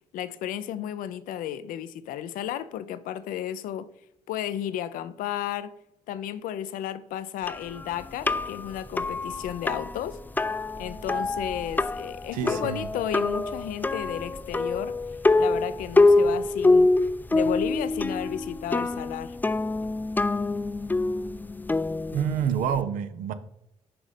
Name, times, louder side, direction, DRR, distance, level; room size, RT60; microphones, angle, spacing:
voice 1, 0.0-3.9 4.3-5.7 6.1-10.2 10.8-15.0 15.4-16.9 17.3-19.4, left 11 dB, 75° left, 0.5 m, -33 dB
sound 1, 7.5-22.8, left 2 dB, 15° left, 0.3 m, -25 dB
voice 2, 12.3-12.9 22.1-23.3, right 8 dB, 75° right, 0.6 m, -27 dB
5.9 x 3.9 x 4.9 m
hypercardioid pair, 45°, 14 cm